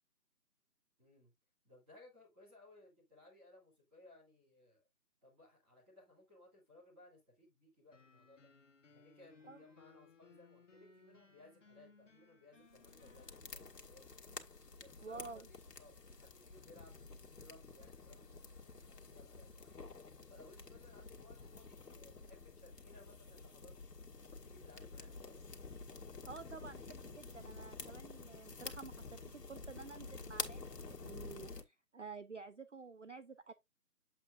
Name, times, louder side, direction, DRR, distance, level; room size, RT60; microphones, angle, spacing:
voice 1, 1.0-1.3 1.6-4.9 5.2-8.5 8.9-14.1 14.8-19.8 20.3-23.9 24.3-25.4, left 2 dB, 5° right, 2.0 m, -62 dB
sound 1, 7.9-13.4, left 4 dB, 50° left, 1.2 m, -64 dB
sound 2, 12.7-31.6, left 4 dB, 85° left, 1.8 m, -50 dB
voice 2, 15.0-15.5 26.3-30.6 30.9-33.5, right 4 dB, 50° right, 0.5 m, -51 dB
7.8 x 7.6 x 2.5 m
figure-of-eight pair, 170°, 47 cm